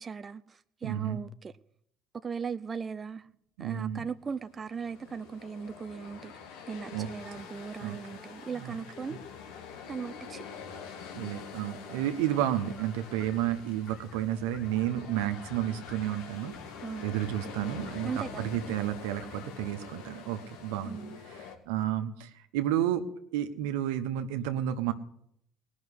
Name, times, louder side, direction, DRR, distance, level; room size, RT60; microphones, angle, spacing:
voice 1, 0.0-1.5 2.1-3.3 3.6-6.3 6.7-9.2 9.9-10.4 16.8-17.1 18.0-18.5 20.8-21.2, right 6 dB, 30° right, 0.6 m, -38 dB
voice 2, 0.8-1.2 3.6-4.1 6.9-7.1 7.8-8.0 8.5-8.8 11.1-16.5 17.0-24.9, right 11 dB, 85° right, 1.2 m, -31 dB
sound 1, 4.3-21.6, left 6 dB, 80° left, 2.2 m, -46 dB
sound 2, 12.8-19.9, left 4 dB, 55° left, 2.6 m, -54 dB
18.5 x 6.4 x 9.8 m
supercardioid pair, 80°, 0 cm